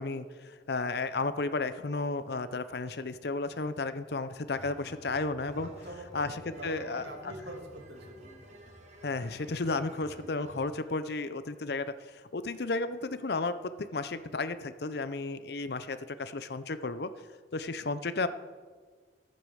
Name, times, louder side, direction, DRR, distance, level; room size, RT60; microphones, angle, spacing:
voice 1, 0.0-5.7 6.1-7.1 9.0-17.1 17.5-18.3, left 3 dB, 60° left, 13 dB, 0.6 m, -33 dB
sound 1, 4.5-10.8, right 1 dB, 40° right, 2.0 m, -51 dB
voice 2, 5.6-8.7, right 1 dB, 65° right, 1 dB, 2.5 m, -45 dB
14.0 x 8.5 x 6.4 m, 1.5 s
head